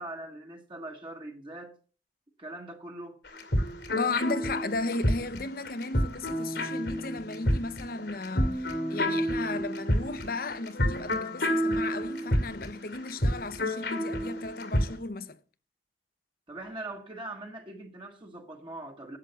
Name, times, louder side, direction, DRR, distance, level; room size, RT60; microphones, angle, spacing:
voice 1, 0.0-1.8 2.4-3.2 16.5-19.2, right 2 dB, 25° right, 1.3 m, -41 dB
sound 1, 3.3-14.9, equal, 75° left, 2.2 m, -29 dB
voice 2, 3.9-15.4, left 3 dB, 55° left, 0.8 m, -35 dB
11.0 x 7.4 x 6.8 m
head